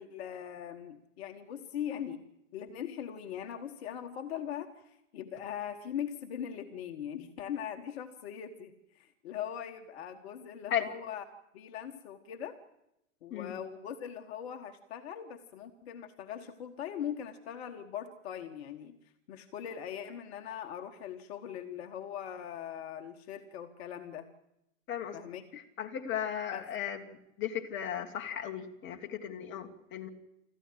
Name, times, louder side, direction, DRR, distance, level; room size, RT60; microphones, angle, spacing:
voice 1, 0.0-2.2 2.5-11.2 11.5-12.6 13.2-19.0 19.3-24.3 25.1-25.4 26.5-26.7, left 9 dB, 50° left, 6 dB, 1.6 m, -41 dB
voice 2, 25.8-30.1, left 9 dB, 30° left, 4 dB, 1.9 m, -36 dB
25.5 x 14.0 x 7.8 m, 0.85 s
figure-of-eight pair, 105°, 40 cm